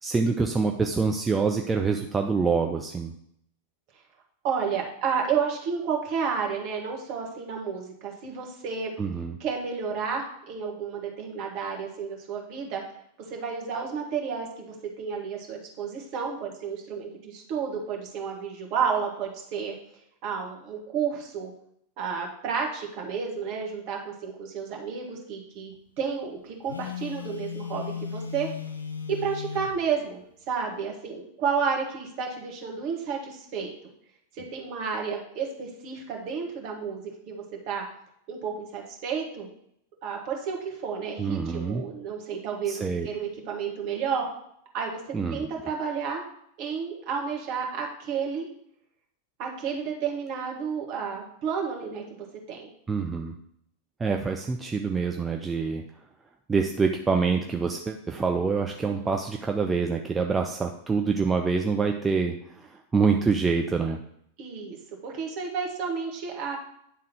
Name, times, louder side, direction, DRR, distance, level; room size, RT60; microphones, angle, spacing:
voice 1, 0.0-3.1 9.0-9.4 41.2-41.8 42.7-43.1 45.1-45.5 52.9-53.3 54.0-55.8 56.5-64.0, right 5 dB, 15° right, 3 dB, 0.5 m, -26 dB
voice 2, 4.4-8.9 9.4-12.8 13.3-19.7 20.2-21.5 22.0-28.5 29.2-30.2 30.5-33.7 34.4-37.8 38.3-39.5 40.0-44.3 44.7-45.0 45.3-46.2 46.6-48.5 49.4-52.7 58.8-59.1 64.4-64.8 65.0-66.6, right 6 dB, 45° right, 0 dB, 1.7 m, -31 dB
Telephone, 26.7-29.8, left 7 dB, 80° left, 0.5 m, -36 dB
9.7 x 3.6 x 4.4 m, 0.72 s
figure-of-eight pair, 90°, 0 cm